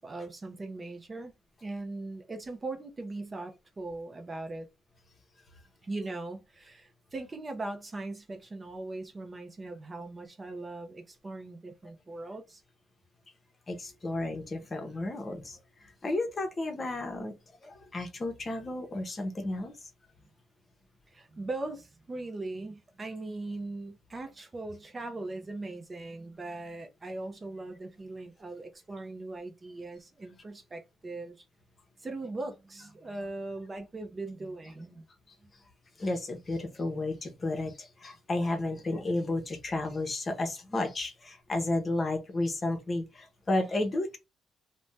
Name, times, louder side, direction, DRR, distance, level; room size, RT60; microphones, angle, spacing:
voice 1, 0.0-1.3 1.6-4.7 5.8-12.6 21.1-31.4 32.0-35.1 35.4-35.5, right 2 dB, 30° right, 0.6 m, -40 dB
voice 2, 13.7-17.3 17.6-19.9 36.0-44.2, left 2 dB, 35° left, 0.8 m, -32 dB
2.6 x 2.2 x 3.2 m
cardioid pair, 90°, 0 cm